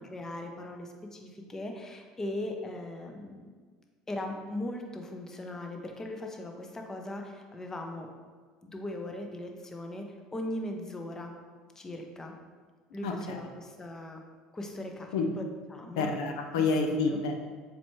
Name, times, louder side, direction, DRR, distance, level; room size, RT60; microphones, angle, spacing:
voice 1, 0.1-3.5 4.1-8.1 8.6-11.3 11.7-12.3 12.9-14.2 14.5-15.1 15.4-15.5 15.7-16.1 16.6-17.2, left 1 dB, 20° left, 3 dB, 0.8 m, -39 dB
voice 2, 13.0-13.4 15.1-15.3 16.0-17.4, left 4 dB, 85° left, 4 dB, 0.7 m, -28 dB
7.0 x 4.5 x 3.1 m, 1.5 s
supercardioid pair, 95°, 2 cm